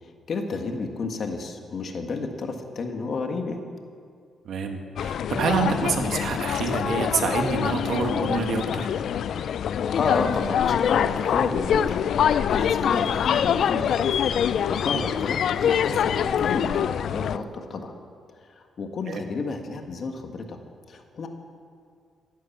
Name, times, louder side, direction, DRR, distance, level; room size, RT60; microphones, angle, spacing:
voice 1, 0.0-3.6 9.6-14.2 14.7-17.9 18.5-20.6 20.9-21.3, left 4 dB, 55° left, 4 dB, 1.7 m, -31 dB
voice 2, 4.5-8.8 19.1-19.2, right 5 dB, 70° right, 4 dB, 1.8 m, -27 dB
sound 1, 5.0-17.4, left 8 dB, 70° left, 0.4 m, -24 dB
15.0 x 11.5 x 7.3 m, 2.2 s
cardioid pair, 95°, 0 cm